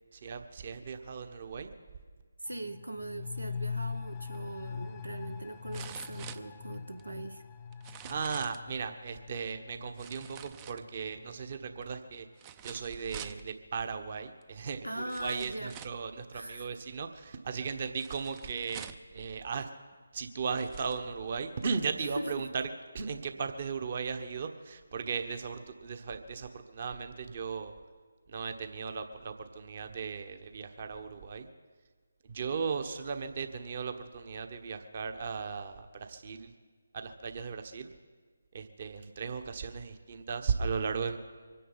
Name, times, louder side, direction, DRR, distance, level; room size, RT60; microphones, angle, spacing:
voice 1, 0.2-1.7 8.0-12.3 12.6-18.8 19.1-19.7 20.1-22.7 22.9-27.7 28.3-31.5 32.2-36.5 36.9-37.9 38.5-41.2, right 5 dB, 40° right, 8 dB, 1.3 m, -36 dB
voice 2, 2.4-7.4 14.8-15.7 16.3-16.8 22.2-22.5, right 1 dB, 85° right, 9 dB, 1.1 m, -40 dB
sound 1, 2.5-11.9 12.2-12.3, left 5 dB, 20° left, 0.7 m, -42 dB
sound 2, 4.3-4.4 5.7-7.0 7.7-8.7 10.0-11.2 12.4-13.4 14.4-14.5 15.1-16.1 18.0-19.1 19.9-20.0 20.4-21.0 21.6-21.7, right 9 dB, 20° right, 0.5 m, -48 dB
24.0 x 10.0 x 5.7 m, 1.5 s
figure-of-eight pair, 150°, 0 cm